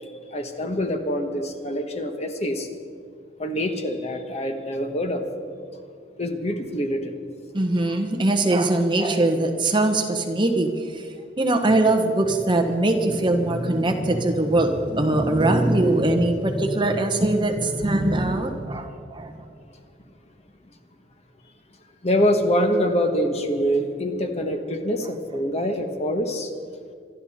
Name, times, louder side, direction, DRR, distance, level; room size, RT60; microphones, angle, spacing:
voice 1, 0.3-2.7 3.4-5.2 6.2-7.1 22.0-26.5, equal, 35° left, 5 dB, 1.3 m, -25 dB
voice 2, 7.5-11.0 11.4-19.4, right 2 dB, 25° right, 4 dB, 1.2 m, -22 dB
26.5 x 12.0 x 4.3 m, 2.3 s
head